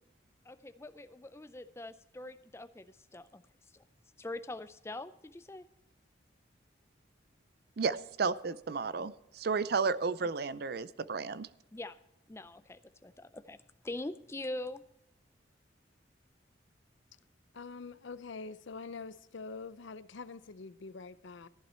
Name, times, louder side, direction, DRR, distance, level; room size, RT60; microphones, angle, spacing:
voice 1, 0.5-3.4 4.2-5.7 11.7-12.0 12.3-13.6 13.8-14.8, left 2 dB, 15° left, 0.4 m, -43 dB
voice 2, 7.8-11.5, right 4 dB, 50° right, 0.5 m, -32 dB
voice 3, 17.5-21.5, left 4 dB, 75° left, 0.6 m, -45 dB
14.5 x 11.0 x 4.3 m
head